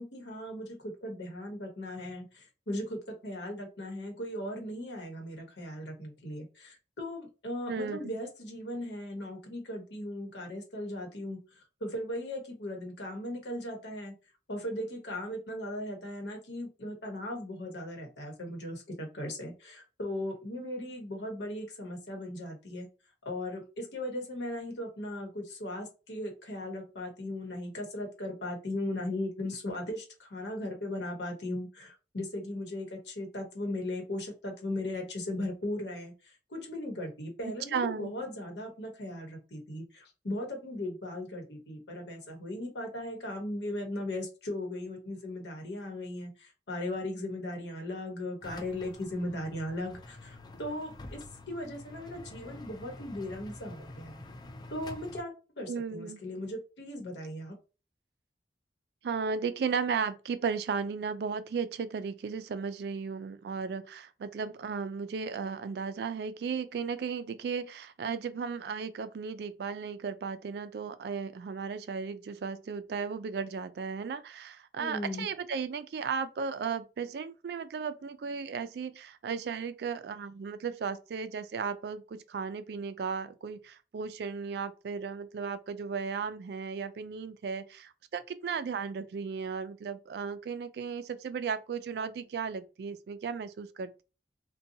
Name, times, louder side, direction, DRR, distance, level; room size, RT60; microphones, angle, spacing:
voice 1, 0.0-14.1 14.5-22.9 23.2-51.2 51.5-54.2 54.7-57.6 74.8-75.3, left 1 dB, 80° left, 1.0 m, -38 dB
voice 2, 7.7-8.2 37.7-38.1 55.7-56.2 59.0-94.0, right 5 dB, 65° right, 0.3 m, -35 dB
sound 1, 48.4-55.2, left 2 dB, 25° left, 0.3 m, -47 dB
2.7 x 2.2 x 2.6 m
head